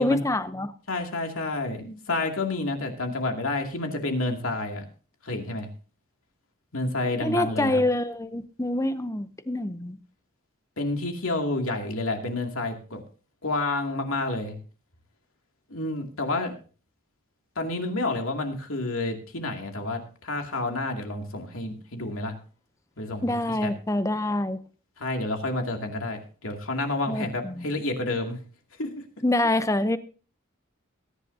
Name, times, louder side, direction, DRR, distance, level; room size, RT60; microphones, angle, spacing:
voice 1, 0.0-0.7 7.2-10.0 23.2-24.6 27.1-27.7 29.2-30.0, left 1 dB, 15° left, 12 dB, 0.6 m, -26 dB
voice 2, 0.9-4.8 5.2-5.7 6.7-7.8 10.8-13.0 13.4-14.6 15.7-16.5 17.6-22.4 23.0-23.7 25.0-28.4 28.8-29.0, left 2 dB, 75° left, 3 dB, 2.4 m, -29 dB
20.5 x 10.5 x 2.7 m, 0.38 s
head